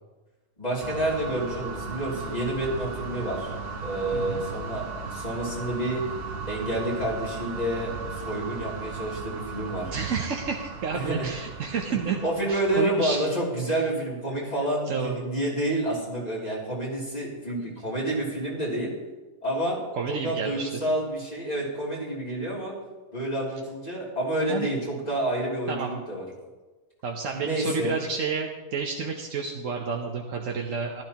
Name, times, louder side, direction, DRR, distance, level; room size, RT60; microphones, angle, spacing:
voice 1, 0.6-3.5 3.8-4.8 5.1-6.0 6.5-9.9 10.9-11.3 12.2-18.9 19.4-19.8 20.1-22.7 23.1-26.2 27.3-28.0, right 1 dB, 30° left, -5 dB, 3.1 m, -29 dB
sound 1, 0.8-13.1, right 4 dB, 50° right, 1.3 m, -36 dB
voice 2, 4.1-4.5 9.9-12.2 12.5-13.2 13.7-13.8 14.9-15.2 20.0-20.7 24.5-24.7 25.7-26.0 27.0-31.0, right 5 dB, 80° right, 1 dB, 1.3 m, -30 dB
15.0 x 12.0 x 2.9 m, 1.2 s
omnidirectional pair, 1.3 m